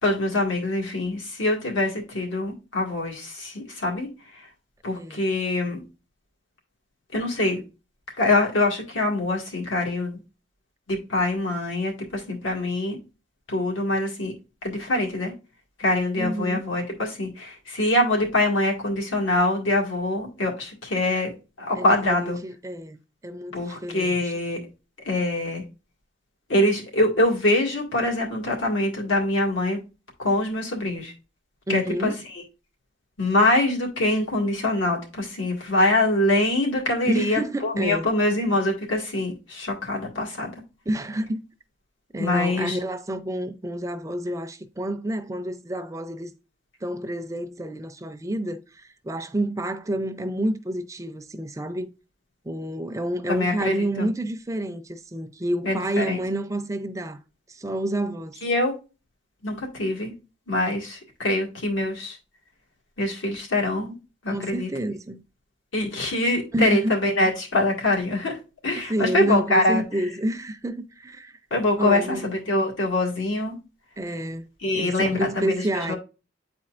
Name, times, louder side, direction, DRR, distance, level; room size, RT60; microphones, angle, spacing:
voice 1, 0.0-4.5 4.8-5.8 7.1-7.6 8.2-10.2 10.9-13.0 13.5-14.3 14.6-15.3 15.8-22.4 23.5-24.6 25.1-25.6 26.5-29.8 30.2-31.1 31.7-32.4 33.2-40.5 42.2-42.8 53.3-54.1 55.6-56.2 58.4-58.7 59.4-60.1 60.5-62.2 63.0-63.9 64.2-64.7 65.7-68.4 68.6-69.8 71.5-73.6 74.6-76.0, left 1 dB, 85° left, 2.0 m, -24 dB
voice 2, 4.9-5.3 16.2-16.6 21.8-24.3 31.7-32.2 37.1-38.1 40.9-41.4 42.1-46.3 46.8-51.9 52.4-57.2 57.5-58.4 64.3-65.2 66.5-66.9 68.9-71.4 71.8-72.4 74.0-74.4 74.7-75.9, right 1 dB, 15° right, 0.4 m, -29 dB
8.8 x 4.3 x 2.5 m
head